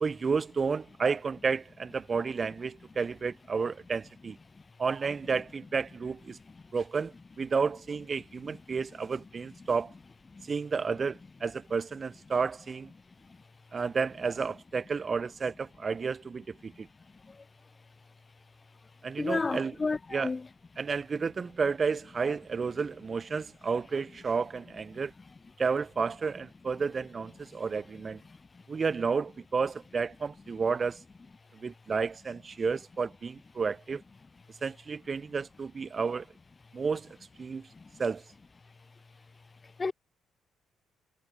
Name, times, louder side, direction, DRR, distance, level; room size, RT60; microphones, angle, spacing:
voice 1, 0.0-4.4 4.8-6.4 6.7-9.9 10.4-12.9 13.7-16.9 19.0-19.8 20.1-20.3 20.8-25.1 25.6-28.2 28.7-31.0 31.5-34.0 34.6-36.3 36.7-37.1 37.4-37.7 38.0-38.2, right 5 dB, 35° right, 0.4 m, -31 dB
voice 2, 19.2-20.4 39.8-39.9, left 4 dB, 25° left, 0.5 m, -31 dB
cardioid pair, 90°, 0 cm